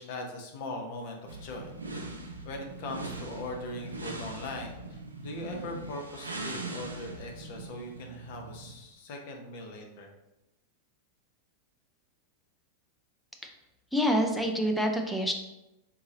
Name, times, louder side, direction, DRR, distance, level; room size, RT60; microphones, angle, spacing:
voice 1, 0.0-1.7 2.4-10.1, left 2 dB, 50° left, 1 dB, 0.7 m, -40 dB
sound 1, 1.3-8.8, right 2 dB, 80° right, 0.4 m, -41 dB
voice 2, 13.9-15.3, equal, ahead, 1 dB, 0.5 m, -26 dB
3.9 x 2.8 x 2.8 m, 0.94 s
figure-of-eight pair, 90°, 0 cm